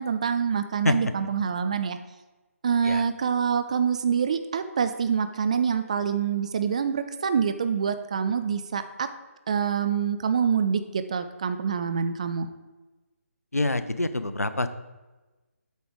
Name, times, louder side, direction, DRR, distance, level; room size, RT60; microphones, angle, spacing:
voice 1, 0.0-2.0 2.6-9.1 9.5-12.5, right 7 dB, 25° right, 10 dB, 0.3 m, -26 dB
voice 2, 13.5-14.7, left 2 dB, 80° left, 12 dB, 0.6 m, -26 dB
8.1 x 5.0 x 4.8 m, 1.2 s
figure-of-eight pair, 150°, 8 cm